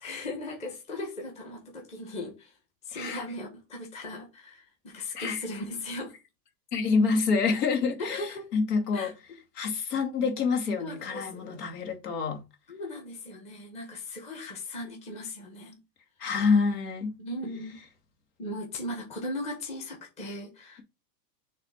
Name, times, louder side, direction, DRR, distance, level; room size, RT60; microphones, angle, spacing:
voice 1, 0.0-2.6 2.8-6.1 8.0-8.5 8.9-9.1 10.8-11.6 12.7-15.8 17.2-17.8 18.4-20.8, left 1 dB, 15° left, 1.2 m, -38 dB
voice 2, 2.9-3.3 5.1-5.4 6.7-9.1 9.6-12.4 16.2-17.1, left 4 dB, 65° left, 2.5 m, -27 dB
6.6 x 3.4 x 5.6 m
supercardioid pair, 170°, 50 cm